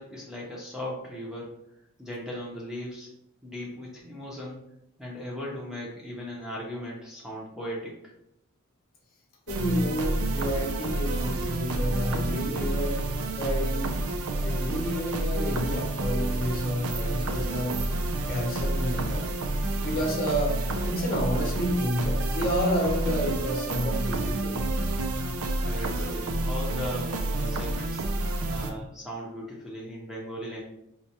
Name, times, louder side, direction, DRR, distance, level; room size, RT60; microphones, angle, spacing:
voice 1, 0.0-1.5 2.0-3.1 3.4-4.6 5.0-7.9 25.6-28.0 28.5-30.6, equal, 5° right, -4 dB, 0.6 m, -37 dB
voice 2, 9.5-13.0 13.4-17.8 18.2-19.3 19.8-20.6 20.8-24.6, equal, 40° left, -1 dB, 0.8 m, -30 dB
sound 1, 9.5-28.7, right 2 dB, 65° right, 0.4 m, -29 dB
4.3 x 2.2 x 2.7 m, 0.79 s
head